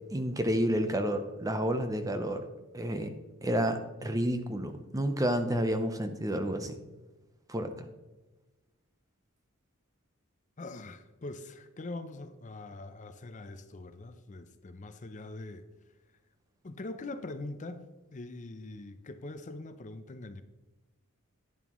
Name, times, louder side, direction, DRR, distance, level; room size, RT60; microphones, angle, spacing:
voice 1, 0.1-2.5 2.7-3.1 3.4-6.8 7.5-7.7, equal, 15° right, 8 dB, 0.7 m, -30 dB
voice 2, 10.6-15.6 16.6-20.4, left 2 dB, 35° left, 10 dB, 0.5 m, -43 dB
11.0 x 10.0 x 3.1 m, 1.1 s
head